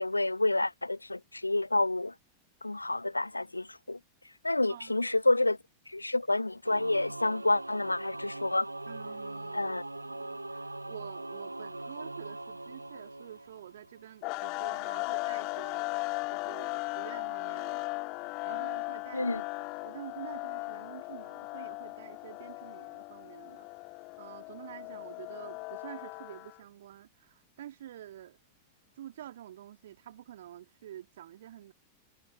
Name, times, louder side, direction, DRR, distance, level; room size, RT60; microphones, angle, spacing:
voice 1, 0.0-2.1 2.6-4.0 4.4-5.6 5.9-8.7 9.5-9.8 19.1-19.4, left 2 dB, 85° left, 0.6 m, -29 dB
voice 2, 4.7-5.1 8.9-15.9 16.3-17.9 18.4-19.3 19.6-23.7 24.2-28.4 29.0-31.7, right 12 dB, 60° right, 2.2 m, -48 dB
Singing / Musical instrument, 6.6-14.1, right 2 dB, 85° right, 0.4 m, -41 dB
sound 1, 14.2-26.6, left 27 dB, 40° left, 2.1 m, -37 dB
figure-of-eight pair, 90°, 0 cm